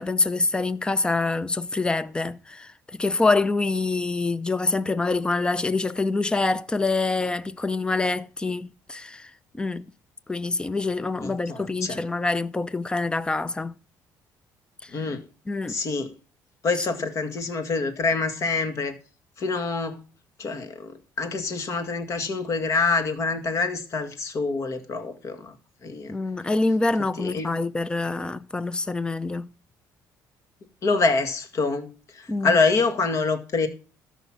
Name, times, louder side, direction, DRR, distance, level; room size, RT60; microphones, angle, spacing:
voice 1, 0.0-9.9 10.3-13.7 14.8-14.9 15.5-15.8 26.1-29.5 32.3-32.6, left 3 dB, 15° left, 0.6 m, -26 dB
voice 2, 11.2-12.0 14.9-15.2 15.7-16.1 16.6-18.9 19.4-20.1 20.4-25.6 25.8-26.1 27.2-27.6 30.8-33.7, left 4 dB, 45° left, 2.0 m, -26 dB
13.5 x 5.7 x 5.9 m
cardioid pair, 130°, 7 cm